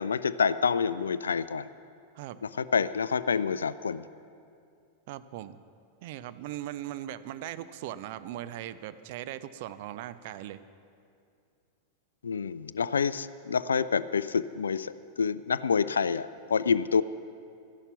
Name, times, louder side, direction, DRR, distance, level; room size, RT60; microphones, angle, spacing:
voice 1, 0.0-1.7 2.4-4.0 12.2-14.9 15.2-17.0, left 6 dB, 70° left, 16 dB, 0.3 m, -27 dB
voice 2, 5.1-5.6 6.0-10.6, right 12 dB, 50° right, 13 dB, 0.5 m, -39 dB
13.5 x 11.0 x 5.8 m, 2.4 s
figure-of-eight pair, 90°, 0 cm